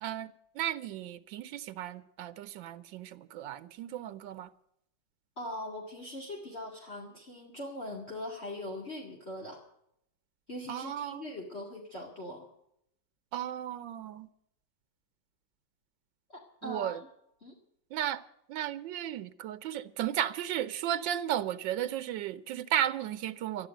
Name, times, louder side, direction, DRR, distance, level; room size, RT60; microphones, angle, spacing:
voice 1, 0.0-4.5 10.7-11.2 13.3-14.3 16.6-17.0 17.9-18.2 18.5-23.7, right 11 dB, 85° right, 1.5 m, -34 dB
voice 2, 5.4-9.6 10.5-12.5 16.3-17.0 17.4-17.6, left 1 dB, 35° left, 2.5 m, -41 dB
13.5 x 10.5 x 9.0 m
omnidirectional pair, 2.0 m